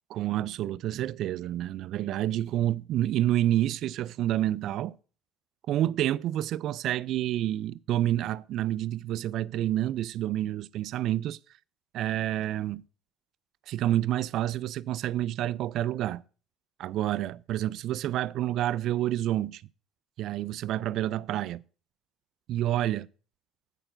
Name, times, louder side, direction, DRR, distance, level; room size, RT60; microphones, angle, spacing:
voice 1, 0.1-4.9 5.7-11.4 11.9-12.8 13.7-16.2 16.8-19.6 20.2-21.6 22.5-23.1, right 13 dB, 65° right, 0.3 m, -28 dB
8.9 x 4.4 x 5.7 m
supercardioid pair, 75°, 0 cm